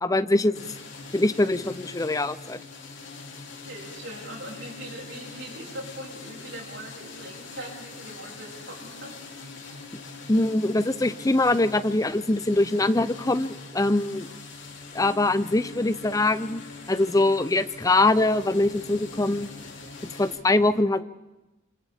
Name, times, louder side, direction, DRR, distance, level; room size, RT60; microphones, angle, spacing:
voice 1, 0.0-0.7 1.1-2.6 10.3-14.3 14.9-16.6 16.9-19.5 20.2-21.0, left 2 dB, 15° left, 13 dB, 0.6 m, -23 dB
sound 1, 0.5-20.4, left 3 dB, 70° left, 3.3 m, -43 dB
voice 2, 3.6-9.5, right 1 dB, 70° right, -2 dB, 7.0 m, -41 dB
28.0 x 27.5 x 3.6 m, 1.0 s
head